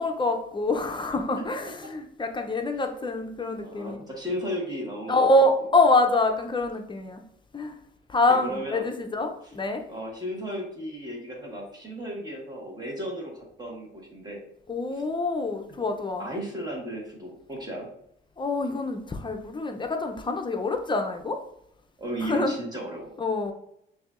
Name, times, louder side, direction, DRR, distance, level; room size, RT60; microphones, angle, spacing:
voice 1, 0.0-4.0 5.1-7.2 7.5-7.7 8.1-9.8 14.7-16.3 18.4-21.4 22.2-22.5 23.2-23.5, left 2 dB, 25° left, 5 dB, 0.6 m, -25 dB
voice 2, 3.6-5.3 8.3-8.9 9.4-9.5 9.9-14.4 14.9-15.0 16.2-17.9 22.0-23.1, equal, 20° right, -2 dB, 1.5 m, -35 dB
6.1 x 2.7 x 2.4 m, 0.73 s
cardioid pair, 90°, 20 cm